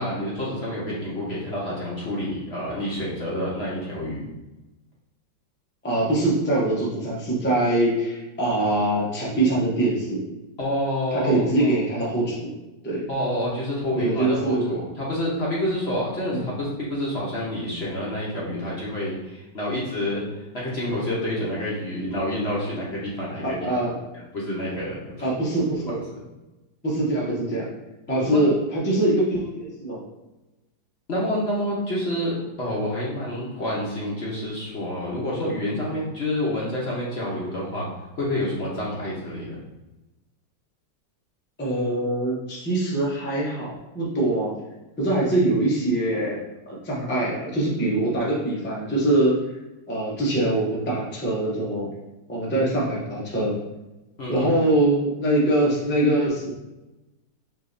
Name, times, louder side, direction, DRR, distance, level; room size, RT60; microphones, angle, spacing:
voice 1, 0.0-4.2 10.6-11.8 13.1-23.7 24.3-25.3 26.1-26.2 28.1-28.4 31.1-37.9 38.2-39.5 54.2-54.5, left 1 dB, 45° left, -6 dB, 0.9 m, -28 dB
voice 2, 5.8-10.2 11.1-12.5 12.8-13.0 13.9-14.8 16.3-16.5 23.4-24.0 25.2-26.0 26.8-27.7 28.1-30.0 41.6-44.5 45.0-49.4 49.9-51.9 52.3-53.5 54.3-56.5, right 1 dB, 15° left, -5 dB, 0.4 m, -23 dB
6.1 x 2.9 x 2.6 m, 1.0 s
omnidirectional pair, 2.0 m